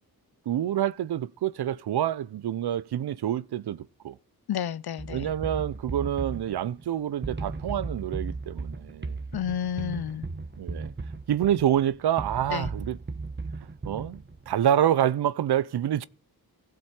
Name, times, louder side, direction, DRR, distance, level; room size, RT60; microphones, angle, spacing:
voice 1, 0.5-4.2 5.1-9.2 10.6-10.9 11.3-13.0 13.8-16.1, right 10 dB, 90° right, 0.6 m, -27 dB
voice 2, 4.5-5.3 9.3-10.3 12.5-12.7, left 9 dB, 80° left, 0.7 m, -31 dB
sound 1, 5.0-14.5, right 3 dB, 30° right, 1.1 m, -36 dB
16.0 x 7.6 x 4.3 m
cardioid pair, 75°, 38 cm